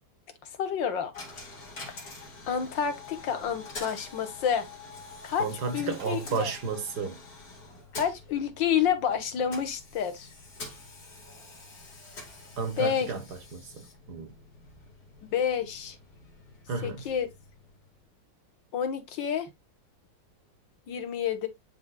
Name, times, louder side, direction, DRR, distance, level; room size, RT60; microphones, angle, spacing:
voice 1, 0.6-1.1 2.0-2.1 2.5-4.7 5.2-5.5 5.7-6.5 7.9-10.3 12.8-13.1 15.3-16.0 16.8-17.3 18.7-19.5 20.9-21.5, left 8 dB, 85° left, 1.9 m, -29 dB
Coin (dropping), 1.1-18.1, left 3 dB, 50° left, 2.9 m, -47 dB
voice 2, 5.4-7.2 12.6-13.2 13.5-14.3 16.7-17.0, right 5 dB, 65° right, 1.7 m, -32 dB
11.0 x 3.8 x 2.2 m
omnidirectional pair, 2.0 m